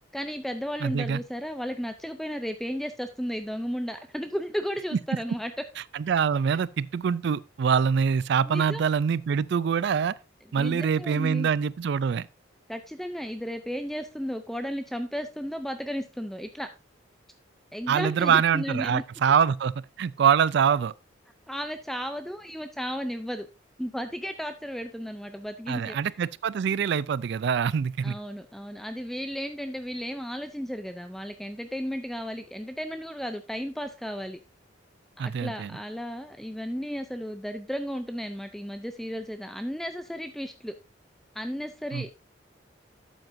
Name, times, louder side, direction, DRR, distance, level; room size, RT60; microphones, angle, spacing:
voice 1, 0.1-5.5 8.5-8.8 10.6-11.5 12.7-16.7 17.7-19.0 21.5-23.5 23.8-26.0 28.0-34.4 35.2-40.7 41.3-42.2, equal, ahead, 0.4 m, -34 dB
voice 2, 0.8-1.2 5.1-5.2 5.9-10.2 10.5-12.3 17.9-20.9 25.7-28.2 35.2-35.7 41.9-42.0, right 7 dB, 60° right, 0.3 m, -24 dB
12.0 x 7.9 x 2.6 m
head